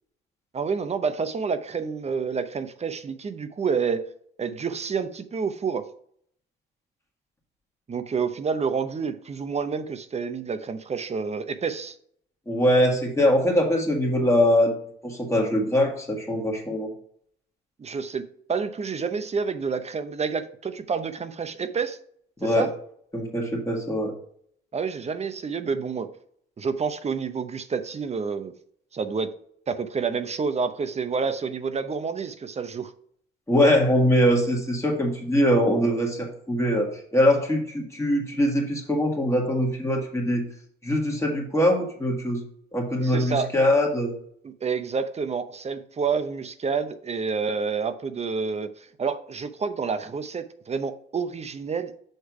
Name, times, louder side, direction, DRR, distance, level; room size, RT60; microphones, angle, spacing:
voice 1, 0.5-4.0 4.4-5.9 7.9-11.9 17.8-22.0 22.4-22.7 24.7-26.1 26.6-28.5 28.9-29.3 29.7-32.9 43.0-43.5 44.4-51.9, right 5 dB, 35° right, 11 dB, 0.7 m, -29 dB
voice 2, 12.5-14.7 15.0-16.9 22.4-22.7 23.1-24.1 33.5-40.4 40.8-42.4 42.7-44.1, equal, 15° left, 0 dB, 1.6 m, -22 dB
6.5 x 3.3 x 5.9 m, 0.63 s
cardioid pair, 90°, 20 cm